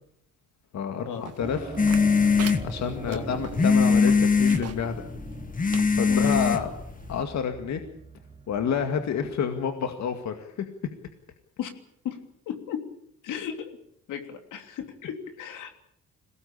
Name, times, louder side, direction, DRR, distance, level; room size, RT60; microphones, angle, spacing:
voice 1, 0.7-1.8 2.6-5.0 6.0-6.7 7.1-7.8 8.5-10.7, left 7 dB, 65° left, 6 dB, 2.1 m, -29 dB
sound 1, 1.2-4.9 5.3-5.4 5.7-6.4 7.0-7.1, right 8 dB, 55° right, 2.1 m, -41 dB
sound 2, 1.4-9.7, right 3 dB, 20° right, 1.4 m, -41 dB
sound 3, 1.8-7.2, left 5 dB, 25° left, 1.6 m, -22 dB
voice 2, 12.5-12.8 13.2-13.7 14.1-15.8, left 8 dB, 85° left, 6 dB, 3.1 m, -34 dB
22.0 x 18.0 x 8.7 m, 0.70 s
cardioid pair, 90°, 30 cm